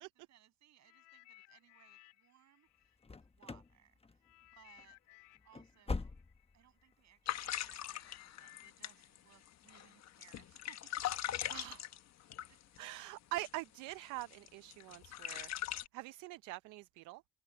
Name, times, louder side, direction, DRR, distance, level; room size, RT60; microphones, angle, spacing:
voice 1, 0.0-4.2 4.5-5.0 5.4-6.2 6.5-11.0 11.5-11.6 12.5-12.6, right 11 dB, 65° right, 6.7 m, -66 dB
sound 1, 0.8-3.7 4.2-13.2 13.9-14.0, left 17 dB, 85° left, 4.3 m, -64 dB
sound 2, 3.0-3.8 4.0-4.5 4.8-4.9 5.4-6.6 6.9-7.0 7.5-7.7, left 3 dB, 20° left, 1.1 m, -42 dB
sound 3, 7.3-12.9 13.4-13.6 13.9-15.9, left 12 dB, 65° left, 1.3 m, -41 dB
voice 2, 12.8-15.6 15.9-17.2, right 19 dB, 85° right, 0.7 m, -44 dB
supercardioid pair, 65°, 29 cm